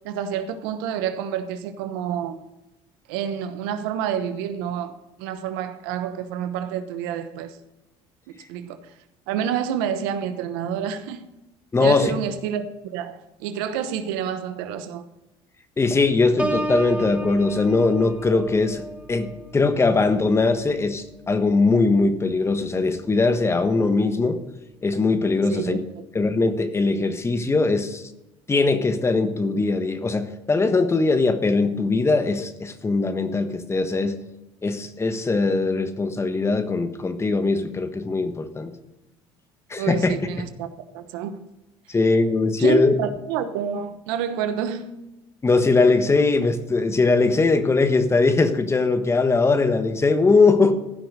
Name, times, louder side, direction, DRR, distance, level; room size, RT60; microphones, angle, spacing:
voice 1, 0.0-2.4 3.1-4.9 5.2-7.6 8.5-8.8 9.3-11.3 11.8-15.0 25.5-25.8 39.8-40.7 40.9-41.4 42.6-44.9, right 8 dB, 90° right, 1.0 m, -28 dB
voice 2, 11.7-12.1 15.8-18.8 19.1-24.4 24.8-25.8 26.1-28.0 28.5-34.2 34.6-38.7 39.7-40.5 41.9-42.9 45.4-50.7, left 3 dB, 25° left, 1.4 m, -21 dB
Piano, 16.4-22.0 22.5-22.8, right 1 dB, 10° right, 1.7 m, -33 dB
15.5 x 6.0 x 6.6 m
supercardioid pair, 90°, 12 cm